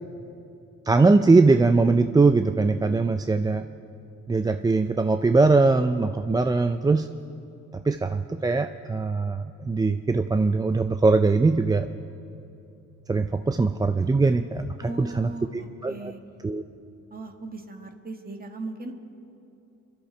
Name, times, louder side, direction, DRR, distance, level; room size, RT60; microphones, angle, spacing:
voice 1, 0.9-3.7 4.3-7.1 7.8-11.9 13.1-16.1 16.4-16.6, right 3 dB, 15° right, 8 dB, 0.4 m, -21 dB
voice 2, 14.8-16.2 17.1-18.9, right 2 dB, 30° right, 4 dB, 1.7 m, -38 dB
29.0 x 12.0 x 3.4 m, 2.8 s
cardioid pair, 90°, 30 cm